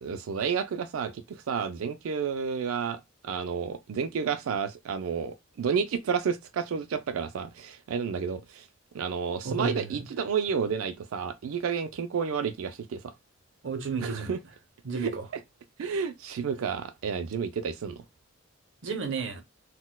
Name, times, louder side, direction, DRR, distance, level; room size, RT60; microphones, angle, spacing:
voice 1, 0.0-8.7 8.9-13.1 14.0-14.4 15.0-15.1 15.8-18.0, right 6 dB, 90° right, 0.4 m, -31 dB
voice 2, 9.4-10.0 13.6-14.3 14.8-15.3 18.8-19.4, right 4 dB, 65° right, 0.7 m, -32 dB
4.0 x 2.1 x 2.2 m
head